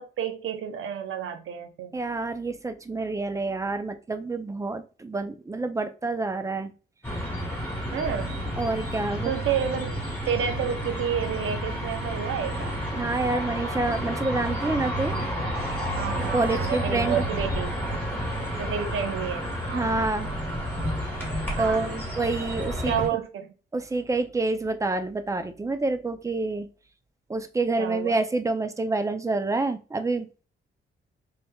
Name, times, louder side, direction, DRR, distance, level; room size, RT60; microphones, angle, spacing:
voice 1, 0.0-2.0 7.9-8.5 9.2-10.0 10.3-12.7 15.9-17.8 18.6-20.0 21.6-21.9 22.8-23.5 27.8-28.2, right 8 dB, 85° right, 0.7 m, -30 dB
voice 2, 1.9-6.7 8.6-9.3 12.9-15.2 16.3-17.2 19.7-20.4 21.6-22.9 23.7-26.7 27.3-30.5, right 3 dB, 15° right, 0.4 m, -28 dB
sound 1, 7.0-23.1, equal, 10° left, 1.6 m, -30 dB
4.4 x 3.3 x 2.2 m
wide cardioid pair, 135°, 21 cm